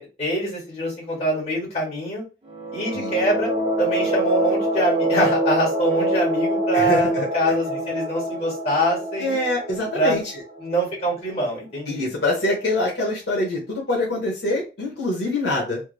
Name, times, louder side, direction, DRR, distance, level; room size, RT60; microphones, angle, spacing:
voice 1, 0.0-2.2 2.7-3.5 3.8-9.3 9.9-10.2 10.6-12.1, right 1 dB, 35° left, -5 dB, 1.7 m, -24 dB
sound 1, 2.5-11.1, right 1 dB, 25° right, 0.7 m, -25 dB
voice 2, 6.7-7.6 9.2-10.2 11.9-15.8, left 1 dB, 70° left, -3 dB, 1.2 m, -25 dB
3.4 x 2.1 x 3.3 m, 0.31 s
head